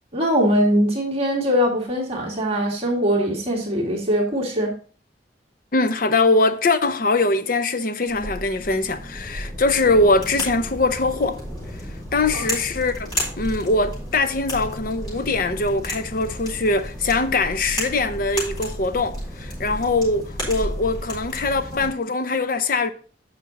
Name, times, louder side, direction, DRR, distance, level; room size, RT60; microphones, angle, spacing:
voice 1, 0.1-4.7 12.3-12.4, equal, 35° right, 2.1 m, -21 dB
voice 2, 5.7-11.4 12.1-22.9, left 3 dB, 50° left, 0.7 m, -22 dB
sound 1, 8.1-21.9, equal, 25° left, 4.0 m, -32 dB
8.5 x 6.1 x 3.9 m
head